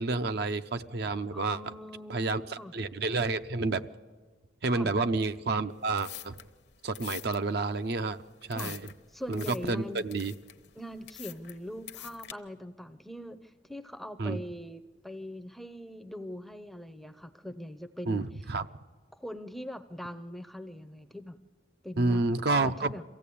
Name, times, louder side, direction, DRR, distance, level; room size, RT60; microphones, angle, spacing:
voice 1, 0.0-1.7 2.1-3.9 4.6-6.3 6.8-8.2 8.5-8.8 9.3-10.3 14.2-14.4 18.1-18.7 22.0-22.9, right 3 dB, 55° right, 10 dB, 0.6 m, -29 dB
voice 2, 1.3-2.7 4.7-4.9 8.5-8.8 9.1-10.0 10.8-18.2 19.1-21.4 21.8-22.2 22.5-23.0, equal, ahead, 11 dB, 0.6 m, -42 dB
sound 1, 5.7-12.3, left 13 dB, 60° left, 0.9 m, -46 dB
23.0 x 15.5 x 8.5 m, 1.4 s
head